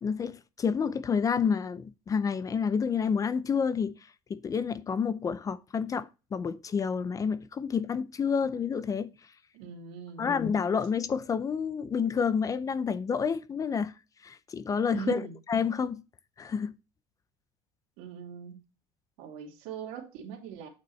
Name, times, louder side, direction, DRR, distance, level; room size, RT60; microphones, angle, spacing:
voice 1, 0.0-4.0 4.3-9.1 10.2-13.9 14.2-15.2 15.5-16.0 16.4-16.7, left 6 dB, 25° left, 0.5 m, -29 dB
voice 2, 9.5-10.3 14.9-15.3 18.0-18.6 19.2-20.7, right 7 dB, 80° right, 2.7 m, -40 dB
9.1 x 5.3 x 3.1 m
cardioid pair, 140°, 14 cm